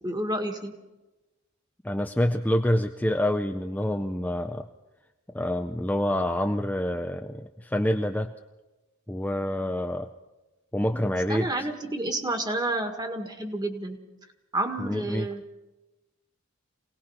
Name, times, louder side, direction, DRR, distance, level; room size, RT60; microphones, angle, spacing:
voice 1, 0.0-0.7 11.3-14.0 14.5-15.4, right 1 dB, 20° right, 5 dB, 1.9 m, -30 dB
voice 2, 1.8-4.7 5.3-8.3 9.1-10.1 10.7-11.7 14.8-15.3, left 1 dB, 5° left, 4 dB, 0.6 m, -27 dB
25.5 x 18.5 x 5.7 m, 1.1 s
head